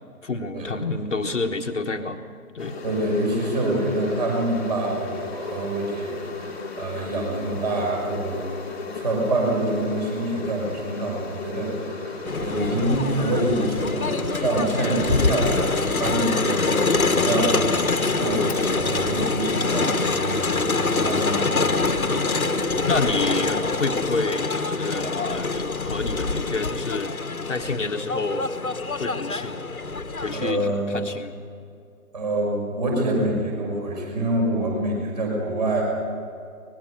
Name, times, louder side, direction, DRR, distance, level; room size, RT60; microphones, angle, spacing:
voice 1, 0.2-2.2 2.5-2.8 22.9-27.1 27.5-28.5 29.0-29.6 30.2-31.4, left 3 dB, 50° left, 4 dB, 1.4 m, -28 dB
sound 1, 2.6-21.0, left 3 dB, 5° left, 1.4 m, -36 dB
voice 2, 2.8-8.5 8.9-22.0 30.3-31.0 32.1-35.8, right 1 dB, 30° right, 0 dB, 6.0 m, -26 dB
Crowd, 12.3-30.5, left 3 dB, 70° left, 1.5 m, -25 dB
23.5 x 20.5 x 6.6 m, 2.4 s
figure-of-eight pair, 150°, 45 cm